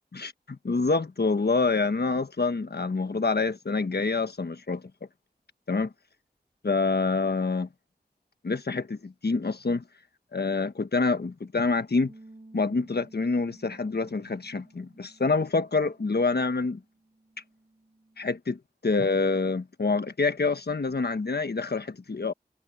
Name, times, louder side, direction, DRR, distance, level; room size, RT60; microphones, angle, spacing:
voice 1, 0.1-4.8 5.7-5.9 6.6-7.7 8.4-9.8 10.3-12.1 12.5-16.8 18.2-22.3, left 3 dB, 75° left, 1.3 m, -27 dB
sound 1, 12.1-18.3, right 2 dB, 40° right, 6.8 m, -55 dB
wide cardioid pair, 55°, 17 cm